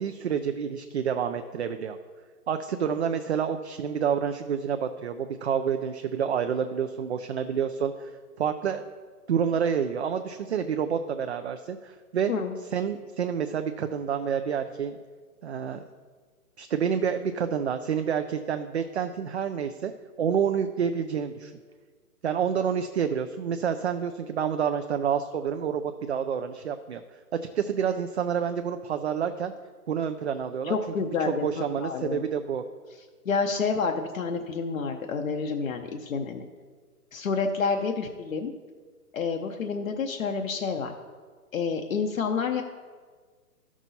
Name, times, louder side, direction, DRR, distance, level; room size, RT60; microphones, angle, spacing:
voice 1, 0.0-2.0 2.5-8.1 8.4-8.8 9.3-12.3 12.7-15.0 15.4-15.8 16.6-19.9 20.2-21.5 22.2-27.0 27.5-29.5 29.9-30.8 31.2-32.6, right 7 dB, 45° right, 8 dB, 0.4 m, -28 dB
voice 2, 30.6-32.2 33.3-36.4 37.1-38.5 39.1-40.9 41.5-42.6, left 5 dB, 60° left, 3 dB, 0.8 m, -29 dB
12.0 x 6.1 x 4.0 m, 1.5 s
hypercardioid pair, 145°, 46 cm